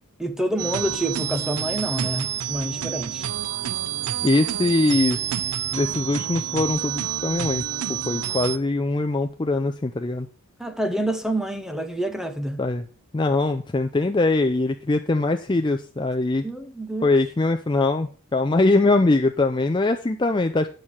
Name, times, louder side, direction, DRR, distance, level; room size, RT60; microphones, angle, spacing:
voice 1, 0.2-3.3 10.6-12.6 16.4-17.1, right 1 dB, ahead, 0.8 m, -27 dB
sound 1, 0.6-8.6, right 10 dB, 90° right, 0.5 m, -28 dB
voice 2, 4.2-5.2 5.7-10.3 12.6-12.8 13.1-16.4 17.0-20.7, left 2 dB, 20° left, 0.4 m, -22 dB
9.2 x 6.4 x 5.6 m
head